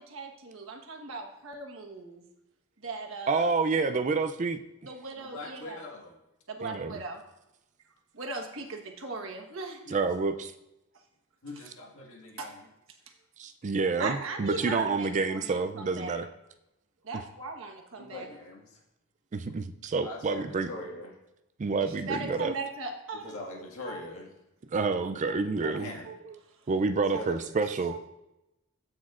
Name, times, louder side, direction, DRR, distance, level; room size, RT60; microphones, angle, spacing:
voice 1, 0.0-2.2 2.8-3.5 4.8-5.8 6.5-7.2 8.1-9.8 12.4-12.5 14.0-16.2 17.0-18.3 22.0-23.3 23.9-24.0 25.3-25.7 26.1-26.2 27.9-28.0, right 3 dB, 65° right, 2 dB, 1.3 m, -38 dB
voice 2, 3.3-4.6 6.6-7.0 9.9-10.5 13.4-16.3 19.3-20.7 21.6-22.5 24.7-25.9 26.7-28.0, right 4 dB, 35° right, 9 dB, 0.4 m, -28 dB
voice 3, 5.1-6.2 9.8-10.0 11.4-12.7 17.9-18.8 20.0-21.2 23.2-24.3 25.5-26.1 27.1-27.5, left 2 dB, 75° left, -1 dB, 1.8 m, -42 dB
15.5 x 6.1 x 2.5 m, 0.91 s
head